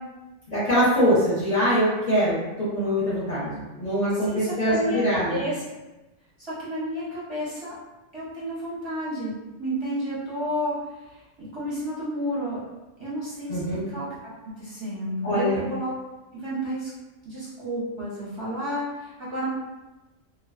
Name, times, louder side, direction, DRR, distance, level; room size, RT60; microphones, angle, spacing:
voice 1, 0.5-5.4 13.5-13.8 15.2-15.7, equal, 40° left, -11 dB, 0.8 m, -23 dB
voice 2, 4.1-5.6 6.4-7.7 8.1-12.6 13.0-14.1 14.4-15.9 16.3-16.9 17.2-19.5, equal, 30° right, -10 dB, 0.6 m, -31 dB
2.3 x 2.2 x 2.4 m, 1.0 s
omnidirectional pair, 1.3 m